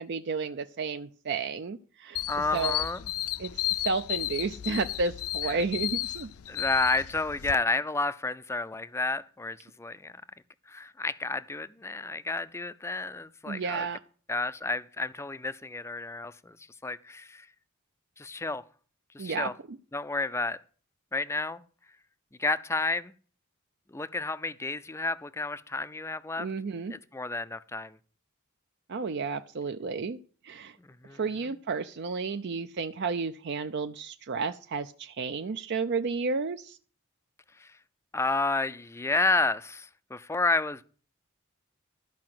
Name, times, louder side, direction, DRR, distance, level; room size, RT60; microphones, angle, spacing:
voice 1, 0.0-2.2 2.5-2.8 3.4-6.3 13.5-14.0 19.2-19.8 26.4-26.9 28.9-30.2 30.4-30.8 31.2-36.8, right 4 dB, 55° right, 0.5 m, -32 dB
sound 1, 2.2-7.5, left 14 dB, 90° left, 0.5 m, -33 dB
voice 2, 2.3-3.0 5.4-5.6 6.5-10.1 10.7-13.9 14.3-16.6 16.8-17.5 18.2-18.6 19.1-19.5 19.9-20.6 21.1-21.6 22.4-23.1 23.9-26.5 26.9-28.0 30.8-31.2 37.6-37.8 38.1-40.8, left 3 dB, 15° left, 0.4 m, -31 dB
13.0 x 4.9 x 7.6 m
head